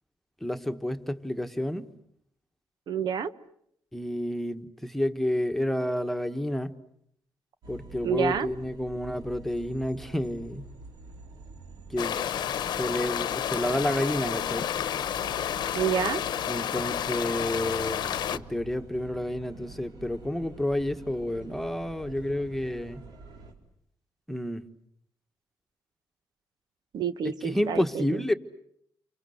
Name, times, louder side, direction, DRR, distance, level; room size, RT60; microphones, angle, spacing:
voice 1, 0.4-1.8 3.9-6.8 7.7-10.7 11.9-12.2 12.7-14.7 16.5-23.0 24.3-24.6 27.2-28.3, left 1 dB, 5° left, 7 dB, 1.5 m, -30 dB
voice 2, 2.9-3.3 8.0-8.5 15.7-16.2 26.9-28.2, right 8 dB, 70° right, 11 dB, 1.2 m, -28 dB
sound 1, 7.6-23.5, right 3 dB, 90° right, 4.9 m, -47 dB
sound 2, 12.0-18.4, left 10 dB, 75° left, 1.0 m, -30 dB
29.5 x 25.0 x 7.9 m, 0.73 s
cardioid pair, 105°, 7 cm